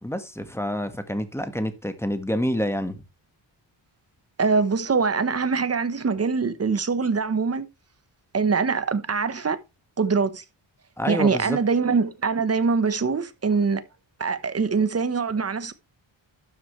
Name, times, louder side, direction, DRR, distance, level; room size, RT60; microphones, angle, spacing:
voice 1, 0.0-3.0 11.0-11.6, equal, 5° left, 1.6 m, -28 dB
voice 2, 4.4-7.7 8.3-9.6 10.0-10.4 11.1-13.8 14.2-15.7, right 5 dB, 30° right, 1.1 m, -23 dB
12.0 x 7.5 x 3.2 m
wide cardioid pair, 110°, 47 cm